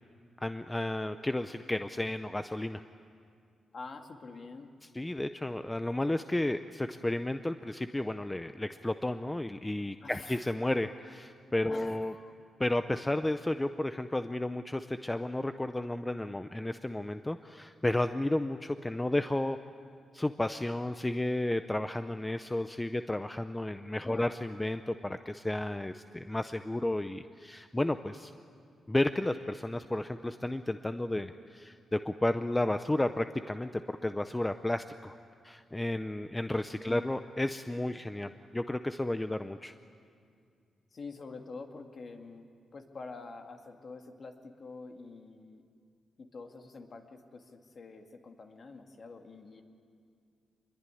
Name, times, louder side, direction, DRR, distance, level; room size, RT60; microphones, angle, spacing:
voice 1, 0.4-2.8 4.9-12.1 12.6-19.6 20.1-28.3 28.9-35.2 35.4-39.7, left 1 dB, 10° left, 9 dB, 0.6 m, -32 dB
voice 2, 3.7-4.7 10.0-10.5 11.7-12.3 24.0-24.3 36.9-37.1 40.9-45.6 46.2-49.6, left 3 dB, 45° left, 4 dB, 2.1 m, -47 dB
26.0 x 22.0 x 9.9 m, 2.3 s
wide cardioid pair, 135°, 0 cm